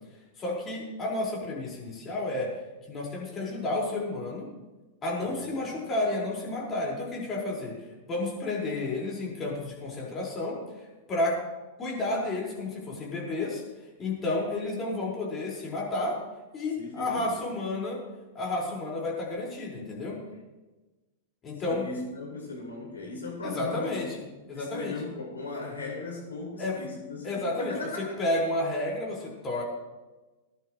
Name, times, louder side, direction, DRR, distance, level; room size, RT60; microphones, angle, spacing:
voice 1, 0.4-2.5 2.9-4.5 5.0-7.7 8.1-10.6 11.1-11.4 11.8-13.6 14.0-16.2 16.5-18.0 18.3-20.2 21.4-21.9 23.4-24.2 24.5-25.0 26.6-26.8 27.2-29.6, left 2 dB, 25° left, -4 dB, 5.3 m, -31 dB
voice 2, 5.2-5.8 16.8-17.3 21.6-24.0 24.5-28.2, left 3 dB, 85° left, -3 dB, 5.6 m, -38 dB
20.5 x 11.5 x 3.2 m, 1.2 s
figure-of-eight pair, 95°, 0 cm